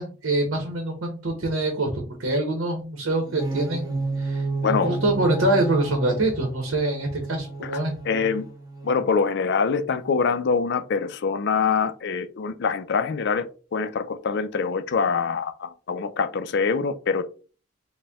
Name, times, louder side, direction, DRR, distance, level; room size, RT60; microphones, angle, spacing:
voice 1, 0.0-7.9, right 2 dB, 70° right, 1.0 m, -25 dB
sound 1, 3.2-9.1, right 3 dB, 20° right, 0.8 m, -31 dB
voice 2, 4.6-5.0 7.6-7.8 8.0-8.5 8.8-13.5 13.7-17.2, left 5 dB, 55° left, 0.4 m, -24 dB
4.1 x 2.2 x 3.5 m
head